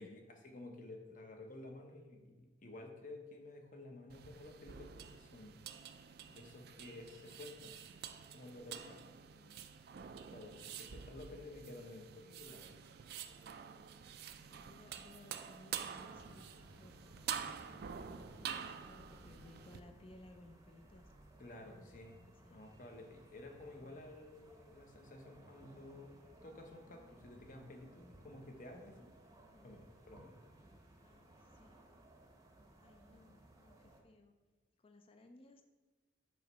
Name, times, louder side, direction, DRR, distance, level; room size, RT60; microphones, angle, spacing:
voice 1, 0.0-5.5 6.3-7.8 8.3-9.2 10.3-12.7 18.4-18.6 21.4-22.2 22.5-26.1 26.4-29.1 29.6-29.8 30.1-30.3, left 2 dB, 45° left, 3 dB, 0.9 m, -52 dB
sound 1, 4.1-19.8, right 8 dB, 60° right, 0.4 m, -48 dB
Thunder / Rain, 12.6-21.7, equal, 10° left, 0.9 m, -69 dB
voice 2, 14.5-17.9 18.7-21.1 21.6-22.6 23.7-24.0 29.4-29.7 31.0-31.8 32.8-34.3 34.8-35.7, left 2 dB, 30° left, 5 dB, 0.4 m, -61 dB
sound 2, 15.8-34.0, right 1 dB, 20° right, 0.7 m, -61 dB
7.5 x 3.0 x 5.4 m, 1.3 s
head